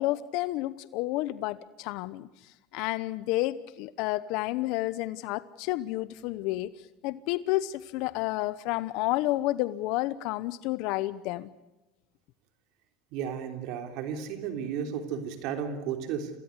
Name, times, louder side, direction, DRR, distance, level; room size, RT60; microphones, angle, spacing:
voice 1, 0.0-6.7 7.0-11.5, left 17 dB, 65° left, 0.9 m, -30 dB
voice 2, 13.1-16.3, right 7 dB, 65° right, 3.3 m, -33 dB
27.0 x 18.0 x 8.1 m
supercardioid pair, 105°, 0 cm